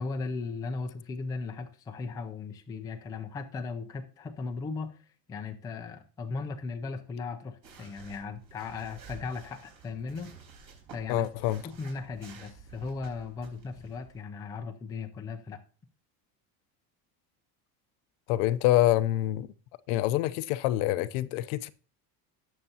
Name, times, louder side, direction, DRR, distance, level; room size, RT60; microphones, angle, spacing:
voice 1, 0.0-5.0 5.3-10.3 10.9-11.3 11.6-15.6, left 4 dB, 10° left, 0.4 m, -37 dB
sound 1, 7.6-14.2, right 5 dB, 50° right, 4.2 m, -51 dB
voice 2, 11.1-11.6 18.3-19.5 19.9-21.7, left 14 dB, 75° left, 0.7 m, -26 dB
18.0 x 6.6 x 2.8 m
cardioid pair, 180°, 43 cm